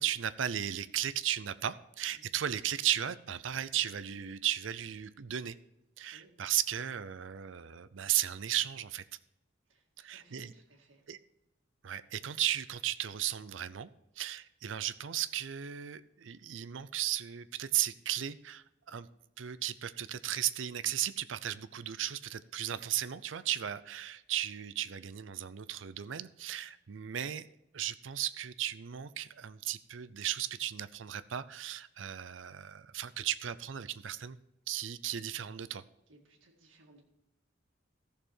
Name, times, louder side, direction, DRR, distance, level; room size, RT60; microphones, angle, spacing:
voice 1, 0.0-5.6 6.0-9.0 10.0-10.5 11.1-11.2 11.8-13.9 14.2-19.1 19.4-27.5 27.7-34.4 34.7-35.8, right 11 dB, 70° right, 15 dB, 0.5 m, -35 dB
voice 2, 9.7-11.1 36.1-37.0, right 2 dB, 90° right, 2 dB, 2.0 m, -62 dB
14.5 x 6.7 x 4.4 m, 0.88 s
head